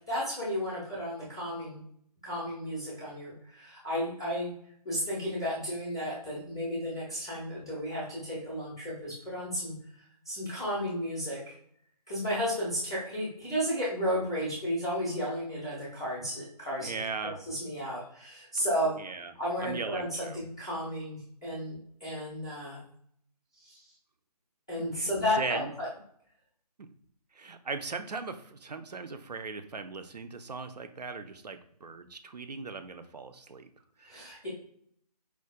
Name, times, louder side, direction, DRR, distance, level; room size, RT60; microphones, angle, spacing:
voice 1, 0.0-1.8 2.2-4.5 4.8-9.7 10.3-11.5 12.1-19.0 19.4-22.8 23.6-23.8 24.7-25.9 34.1-34.5, equal, 10° left, -10 dB, 0.4 m, -33 dB
voice 2, 16.8-17.4 18.6-18.7 19.0-20.4 24.8-25.7 26.8-26.9 27.3-33.7 34.0-34.5, right 4 dB, 75° right, 8 dB, 0.4 m, -39 dB
4.5 x 2.1 x 2.3 m, 0.65 s
figure-of-eight pair, 145°, 21 cm